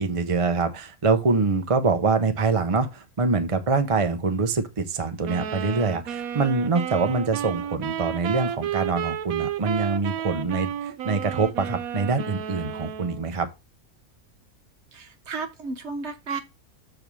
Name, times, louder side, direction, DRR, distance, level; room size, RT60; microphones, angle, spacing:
voice 1, 0.0-13.5, right 4 dB, 35° right, 0.6 m, -24 dB
sound 1, 5.2-13.2, right 9 dB, 75° right, 1.1 m, -32 dB
voice 2, 14.9-16.4, right 4 dB, 50° right, 1.2 m, -33 dB
7.0 x 3.3 x 6.0 m
omnidirectional pair, 1.6 m